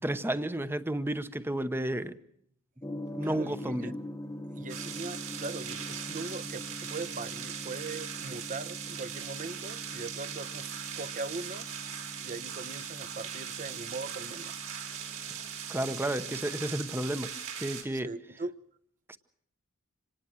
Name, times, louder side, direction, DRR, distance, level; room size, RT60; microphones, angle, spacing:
voice 1, 0.0-2.2 3.1-3.9 15.3-18.1 19.1-19.2, right 1 dB, 10° right, 0.8 m, -32 dB
Gong, 2.8-16.6, equal, 15° left, 0.9 m, -44 dB
voice 2, 3.2-3.9 4.5-11.7 12.2-14.6 18.0-18.5, right 3 dB, 40° right, 0.8 m, -40 dB
sound 1, 4.7-17.8, right 8 dB, 70° right, 4.1 m, -40 dB
26.0 x 19.0 x 6.2 m
head